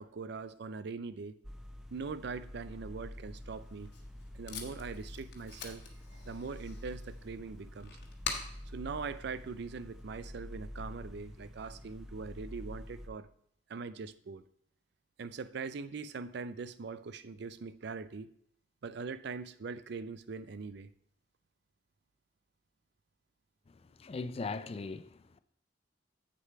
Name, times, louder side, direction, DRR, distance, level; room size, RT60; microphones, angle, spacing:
voice 1, 0.0-1.4 1.9-3.9 4.3-5.8 6.1-7.9 8.7-13.3 13.7-14.4 15.2-18.3 18.8-20.9, right 4 dB, 65° right, 0.5 m, -42 dB
sound 1, 1.4-13.1, equal, 5° right, 0.7 m, -47 dB
Packing tape duct tape, 3.5-10.0, left 5 dB, 65° left, 1.3 m, -46 dB
voice 2, 23.7-25.4, left 4 dB, 35° left, 0.4 m, -40 dB
7.7 x 6.5 x 4.6 m
head